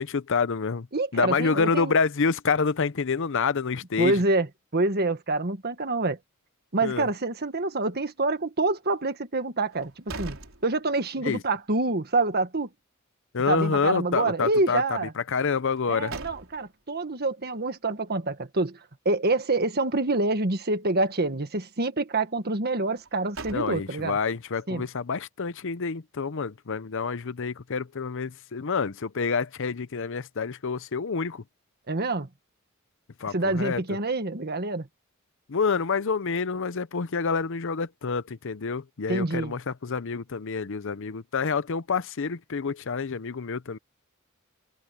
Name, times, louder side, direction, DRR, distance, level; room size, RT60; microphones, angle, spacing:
voice 1, 0.0-0.9 1.1-4.2 6.8-7.1 11.2-11.4 13.3-16.2 23.5-31.4 33.2-33.8 35.5-43.8, left 5 dB, 65° left, 0.7 m, -28 dB
voice 2, 0.9-1.9 4.0-4.5 4.7-6.2 6.7-10.4 10.6-12.7 13.5-15.1 15.9-18.8 19.0-24.2 24.7-24.8 31.9-32.3 33.3-34.9 39.1-39.5, right 2 dB, 50° right, 1.6 m, -26 dB
sound 1, 9.7-11.3 11.7-11.8 15.6-16.9 22.9-24.2, right 3 dB, 70° right, 4.6 m, -42 dB
head